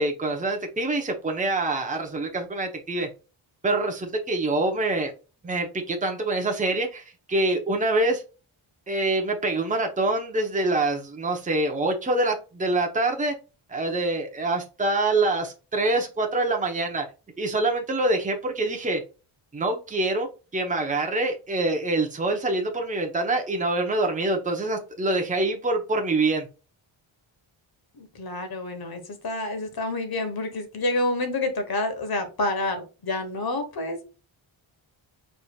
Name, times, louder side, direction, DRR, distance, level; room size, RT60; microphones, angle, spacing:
voice 1, 0.0-3.1 3.6-5.1 5.4-8.2 8.9-13.3 13.7-17.1 17.4-19.0 19.5-20.3 20.5-26.5, right 2 dB, 15° right, 0.9 m, -25 dB
voice 2, 27.9-34.0, left 2 dB, 50° left, 1.3 m, -28 dB
4.9 x 4.2 x 2.4 m
wide cardioid pair, 160°, 48 cm